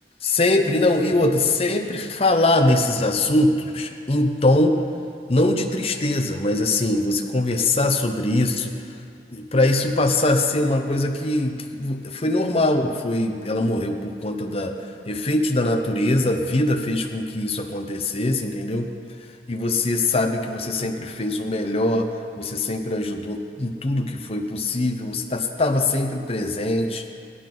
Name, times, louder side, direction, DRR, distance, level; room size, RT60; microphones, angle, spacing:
voice 1, 0.2-4.8 5.3-8.7 9.3-14.8 15.1-18.9 19.5-22.1 22.4-27.0, left 2 dB, 35° left, 4 dB, 0.9 m, -22 dB
16.5 x 11.5 x 3.9 m, 2.3 s
head